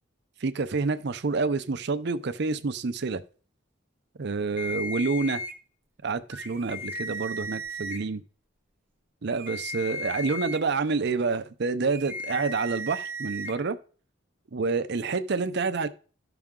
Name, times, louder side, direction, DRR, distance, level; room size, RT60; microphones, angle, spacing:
voice 1, 0.4-3.2 4.2-5.4 6.0-8.2 9.2-13.8 14.5-15.9, right 4 dB, 55° right, 0.6 m, -28 dB
sound 1, 4.6-5.5 6.3-8.0 9.3-10.6 11.9-13.5, equal, 10° right, 0.9 m, -35 dB
13.0 x 5.9 x 3.7 m
head